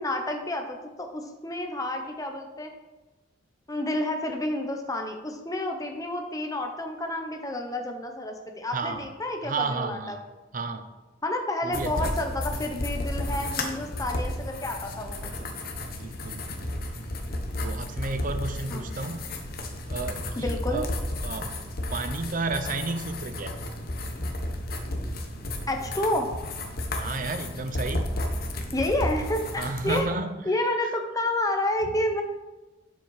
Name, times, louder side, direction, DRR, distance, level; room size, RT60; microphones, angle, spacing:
voice 1, 0.0-2.7 3.7-10.2 11.2-15.5 18.7-18.9 20.4-20.8 25.7-26.3 28.7-30.1 30.5-32.2, left 1 dB, 20° left, 3 dB, 1.1 m, -30 dB
voice 2, 8.7-9.1 9.4-10.2 10.5-10.9 11.6-12.1 16.0-16.9 17.6-19.3 19.9-20.9 21.2-21.5 21.9-23.6 27.0-28.2 29.6-30.4 30.8-30.9, right 3 dB, 45° right, 9 dB, 0.7 m, -32 dB
sound 1, 11.7-30.0, left 1 dB, 50° left, 1.3 m, -33 dB
9.7 x 7.5 x 4.9 m, 1.1 s
head